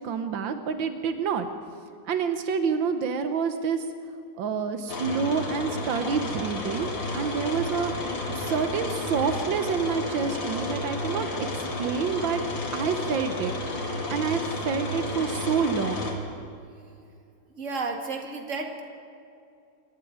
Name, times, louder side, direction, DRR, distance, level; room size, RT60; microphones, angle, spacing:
voice 1, 0.0-1.5 2.1-3.9 4.4-12.4 12.7-13.5 14.1-16.1, right 6 dB, 85° right, 8 dB, 1.7 m, -28 dB
sound 1, 4.9-16.1, left 2 dB, 80° left, 3.2 m, -32 dB
voice 2, 17.5-18.8, right 3 dB, 40° right, 3 dB, 2.4 m, -32 dB
26.0 x 11.5 x 9.4 m, 2.5 s
omnidirectional pair, 2.0 m